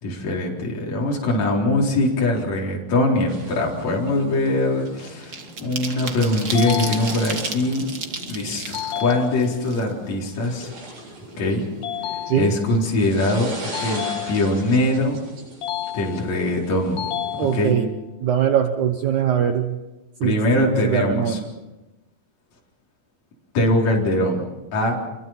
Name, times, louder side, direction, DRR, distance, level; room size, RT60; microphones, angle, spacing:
voice 1, 0.0-7.9 8.3-10.7 11.4-11.6 12.1-15.2 15.9-17.1 17.4-17.8 20.2-21.4 23.5-25.0, left 1 dB, 50° left, -2 dB, 5.2 m, -22 dB
sound 1, 3.3-3.5 3.8-10.3 10.6-10.7 11.0-12.0 12.3-12.5 12.8-13.1, right 4 dB, 40° right, 1.5 m, -34 dB
sound 2, 3.3-17.6, right 1 dB, 85° right, 10.0 m, -40 dB
sound 3, 6.5-7.6 8.7-9.7 11.8-12.8 13.7-14.8 15.6-16.5 17.0-18.0, left 11 dB, 75° left, 3.3 m, -31 dB
voice 2, 17.4-17.9 18.2-19.8 20.2-21.4, right 9 dB, 65° right, 7 dB, 2.1 m, -21 dB
26.5 x 23.0 x 5.8 m, 1.1 s
omnidirectional pair, 4.3 m